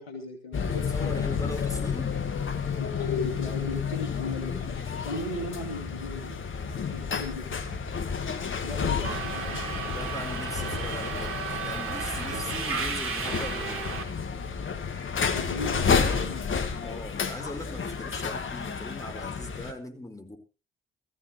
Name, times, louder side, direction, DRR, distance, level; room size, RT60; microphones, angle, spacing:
voice 1, 0.0-1.5 2.7-8.3 8.6-9.8 15.3-16.5, left 2 dB, 85° left, 4 dB, 2.6 m, -38 dB
sound 1, 0.5-19.7, left 6 dB, 40° left, 1.9 m, -31 dB
voice 2, 0.7-2.1 9.9-14.0 16.0-16.4 16.8-20.4, left 1 dB, 10° left, 5 dB, 4.5 m, -40 dB
Subway metro underground, 9.0-14.0, right 5 dB, 45° right, 3.4 m, -33 dB
19.5 x 14.5 x 3.1 m, 0.32 s
figure-of-eight pair, 50°, 30 cm